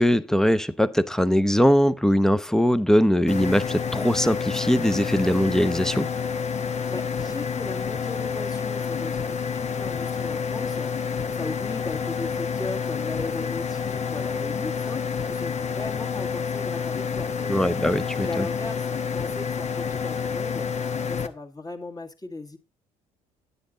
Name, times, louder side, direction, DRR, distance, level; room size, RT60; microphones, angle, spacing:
voice 1, 0.0-6.1 17.5-18.5, equal, 5° left, 0.8 m, -21 dB
sound 1, 3.3-21.3, left 6 dB, 40° left, 1.2 m, -29 dB
voice 2, 6.6-17.8 18.2-22.6, left 3 dB, 20° left, 1.9 m, -37 dB
9.9 x 8.8 x 3.9 m
hypercardioid pair, 60°, 18 cm